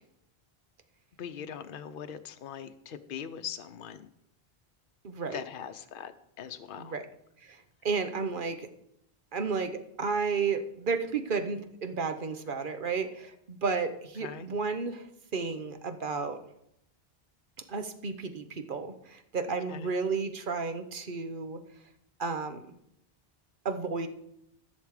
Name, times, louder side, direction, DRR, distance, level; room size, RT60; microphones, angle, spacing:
voice 1, 1.2-4.1 5.3-6.9 14.2-14.5 19.5-20.0, left 8 dB, 60° left, 8 dB, 0.8 m, -41 dB
voice 2, 5.0-5.4 6.8-7.0 7.4-7.6 7.8-8.7 9.3-15.1 15.3-16.4 17.7-21.6 22.2-22.6 23.6-24.1, right 5 dB, 55° right, 8 dB, 1.1 m, -32 dB
14.0 x 6.5 x 4.8 m, 0.77 s
omnidirectional pair, 1.0 m